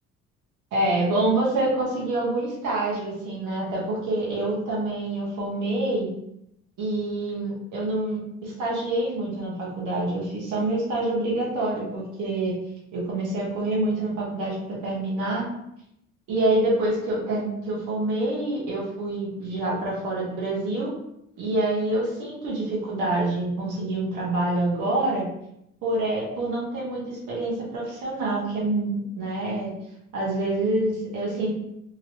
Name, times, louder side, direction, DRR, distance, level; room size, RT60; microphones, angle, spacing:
voice 1, 0.7-6.1 6.8-12.5 12.9-15.5 16.3-20.9 21.4-25.3 25.8-29.7 30.1-31.5, right 2 dB, 80° right, -5 dB, 1.2 m, -26 dB
3.0 x 2.7 x 2.9 m, 0.79 s
cardioid pair, 90°, 30 cm